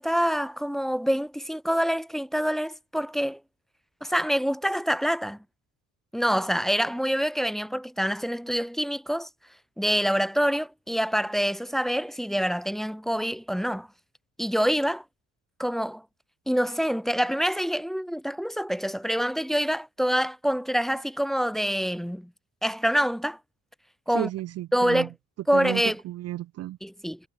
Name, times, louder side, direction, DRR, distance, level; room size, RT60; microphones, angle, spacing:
voice 1, 0.0-3.4 4.0-5.4 6.1-9.3 9.8-13.9 14.4-15.0 15.6-16.0 16.5-22.3 22.6-23.4 24.1-24.3 24.7-25.1 25.5-26.0 26.8-27.2, equal, ahead, 0.8 m, -26 dB
voice 2, 24.1-25.1 25.5-26.8, right 14 dB, 55° right, 0.4 m, -33 dB
cardioid pair, 90°, 30 cm